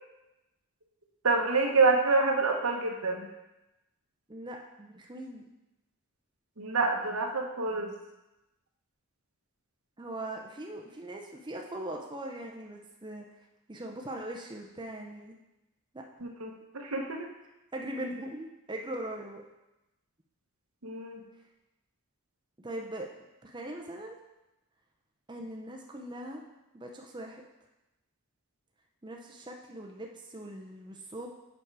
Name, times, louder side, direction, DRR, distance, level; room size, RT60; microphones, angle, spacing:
voice 1, 1.2-3.3 6.6-7.9 16.2-17.3 20.8-21.2, right 3 dB, 85° right, 1 dB, 1.2 m, -27 dB
voice 2, 4.3-5.4 10.0-13.2 13.7-15.4 15.9-16.0 17.7-19.4 22.6-23.1 23.4-24.2 25.3-26.4 26.7-27.4 29.0-31.3, right 1 dB, 20° right, 1 dB, 0.6 m, -40 dB
7.1 x 5.4 x 4.8 m, 0.97 s
head